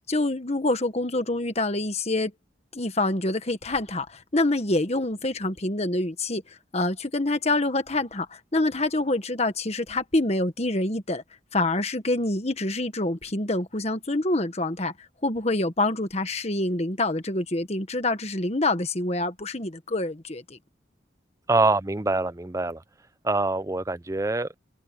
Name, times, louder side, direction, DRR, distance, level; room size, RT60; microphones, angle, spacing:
voice 1, 0.0-2.3 2.7-11.2 11.5-20.6, left 2 dB, 35° left, 1.5 m, -26 dB
voice 2, 21.5-22.8 23.2-24.5, right 2 dB, 15° right, 0.6 m, -24 dB
head